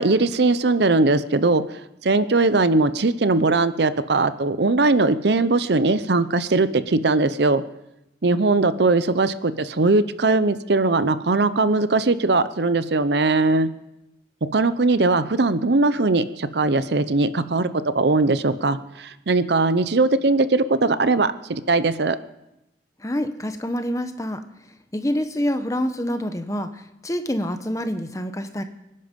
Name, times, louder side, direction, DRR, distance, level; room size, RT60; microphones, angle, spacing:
voice 1, 0.0-1.6 2.0-7.6 8.2-13.7 14.4-17.7 17.9-22.2, right 3 dB, 65° right, 13 dB, 0.7 m, -20 dB
voice 2, 23.0-24.4 24.9-28.6, equal, 15° left, 8 dB, 1.0 m, -26 dB
25.0 x 11.0 x 5.3 m, 0.91 s
head